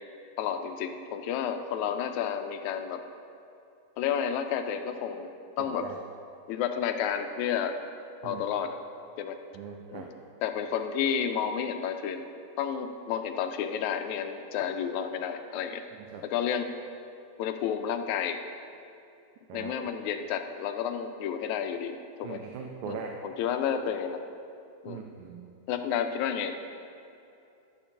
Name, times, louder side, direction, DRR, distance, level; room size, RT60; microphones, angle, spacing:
voice 1, 0.4-3.0 4.0-5.3 5.6-5.9 6.5-7.8 8.2-8.8 9.2-9.4 9.9-10.1 10.4-12.3 12.6-15.8 16.2-16.7 17.4-18.4 19.5-22.4 22.9-24.2 24.8-25.0 25.7-26.5, left 8 dB, 85° left, 6 dB, 2.0 m, -31 dB
voice 2, 5.6-6.0 8.2-8.4 9.5-10.1 16.0-16.2 19.5-19.7 22.2-23.2 24.9-25.5, right 6 dB, 90° right, 1 dB, 2.1 m, -40 dB
12.5 x 4.6 x 6.9 m, 2.6 s
omnidirectional pair, 3.3 m